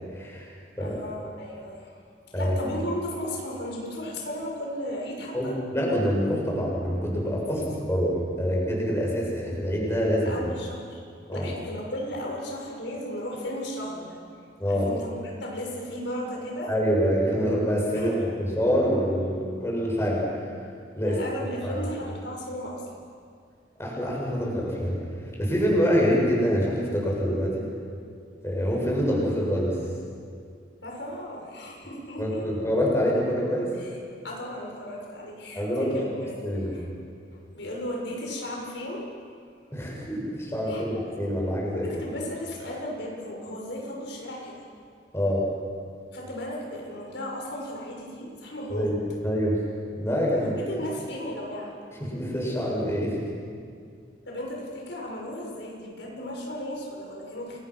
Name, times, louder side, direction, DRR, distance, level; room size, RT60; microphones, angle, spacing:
voice 1, 0.1-1.0 2.3-2.6 5.3-10.4 11.3-11.5 14.6-14.9 16.7-20.5 21.0-21.2 21.6-21.7 23.8-25.0 25.4-27.7 28.4-29.8 32.2-33.7 35.5-35.9 36.4-36.7 39.7-41.9 45.1-45.4 48.7-49.0 49.2-49.6 50.0-50.6 52.0-53.3, equal, 15° left, -3 dB, 7.0 m, -26 dB
voice 2, 0.8-2.0 2.3-5.6 7.5-7.7 10.2-11.0 11.3-14.2 14.7-16.7 17.0-17.1 17.9-18.2 21.0-22.9 30.8-32.5 33.7-34.0 34.2-36.9 37.3-39.1 40.6-40.8 41.8-44.6 46.1-48.9 50.4-51.8 54.2-57.6, left 1 dB, 80° left, -1 dB, 6.6 m, -35 dB
29.5 x 24.0 x 6.4 m, 2.2 s
head